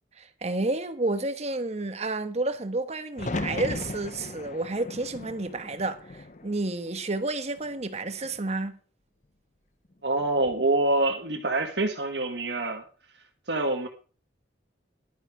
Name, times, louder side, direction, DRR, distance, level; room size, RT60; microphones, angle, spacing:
voice 1, 0.2-8.8, right 2 dB, 35° right, 1.2 m, -30 dB
sound 1, 3.2-7.2 7.6-8.3 10.2-10.7, left 2 dB, 45° left, 0.8 m, -37 dB
voice 2, 10.0-12.8 13.5-13.9, right 2 dB, 70° right, 1.6 m, -26 dB
12.0 x 9.9 x 4.9 m
head